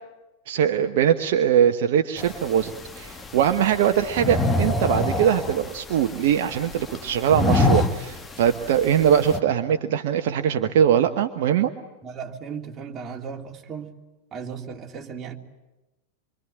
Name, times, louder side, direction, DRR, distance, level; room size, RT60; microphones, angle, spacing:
voice 1, 0.5-11.7, right 9 dB, 55° right, 1.2 m, -21 dB
sound 1, 2.2-9.4, left 1 dB, 15° left, 1.4 m, -27 dB
voice 2, 12.0-13.9 14.3-15.4, right 6 dB, 25° right, 3.2 m, -36 dB
26.0 x 25.0 x 9.0 m
figure-of-eight pair, 90°, 0 cm